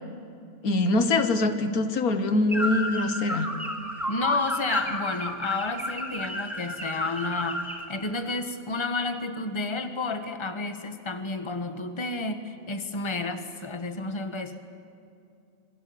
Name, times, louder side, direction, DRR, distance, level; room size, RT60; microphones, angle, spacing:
voice 1, 0.6-3.5, left 2 dB, 85° left, 8 dB, 1.9 m, -24 dB
sound 1, 2.5-7.8, equal, ahead, 4.5 m, -32 dB
voice 2, 4.1-14.6, left 3 dB, 20° left, 8 dB, 1.4 m, -31 dB
27.5 x 22.5 x 8.7 m, 2.5 s
omnidirectional pair, 1.5 m